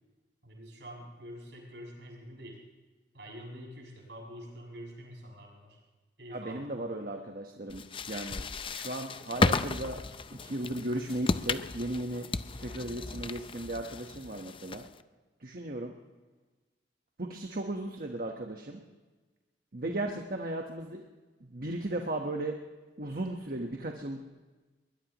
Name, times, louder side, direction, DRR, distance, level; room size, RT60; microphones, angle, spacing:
voice 1, 0.4-2.6 3.1-5.8 6.2-6.9, equal, 75° right, -2 dB, 7.1 m, -46 dB
voice 2, 6.3-10.0 10.3-12.3 12.6-14.8 15.4-15.9 17.2-18.8 19.7-21.0 21.4-22.6 23.0-24.3, right 1 dB, 55° right, 2 dB, 1.3 m, -36 dB
sound 1, 7.7-15.0, left 3 dB, 30° left, 0.5 m, -34 dB
22.0 x 20.5 x 3.1 m, 1.3 s
head